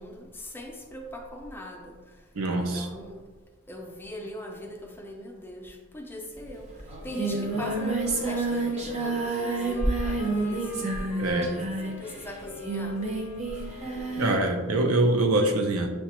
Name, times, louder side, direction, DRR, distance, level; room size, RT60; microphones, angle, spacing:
voice 1, 0.0-2.0 2.7-3.2 3.7-6.7 7.0-10.8 11.8-13.0, left 1 dB, 10° left, 1 dB, 0.4 m, -40 dB
voice 2, 2.3-2.9 11.2-11.7 14.2-15.9, right 2 dB, 75° right, 3 dB, 0.5 m, -24 dB
Singing, 6.4-6.5 6.8-14.5, right 2 dB, 30° right, 0.6 m, -29 dB
sound 1, 6.9-14.8, left 5 dB, 80° left, 0.5 m, -44 dB
6.4 x 2.2 x 2.9 m, 1.3 s
head